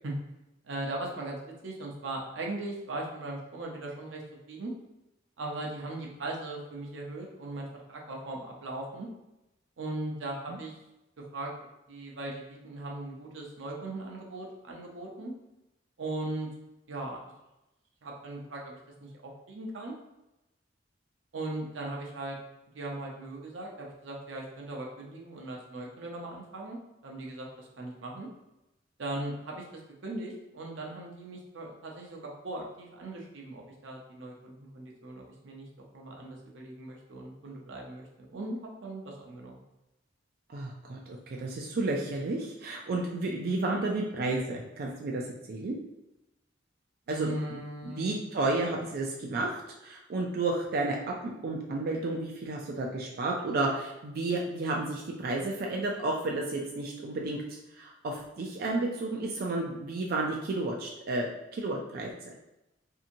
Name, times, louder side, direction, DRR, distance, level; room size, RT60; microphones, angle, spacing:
voice 1, 0.6-4.2 4.5-4.7 5.4-9.1 9.8-10.7 11.3-11.5 11.9-15.3 16.0-16.5 16.9-17.2 18.0-19.9 21.3-22.4 22.7-26.8 27.0-28.3 29.0-35.7 35.9-38.1 38.3-39.6 47.1-48.1, right 2 dB, 90° right, -1 dB, 0.6 m, -39 dB
voice 2, 40.5-45.8 47.1-57.4 57.7-62.3, right 2 dB, 55° right, -1 dB, 0.3 m, -32 dB
2.7 x 2.6 x 2.5 m, 0.93 s
head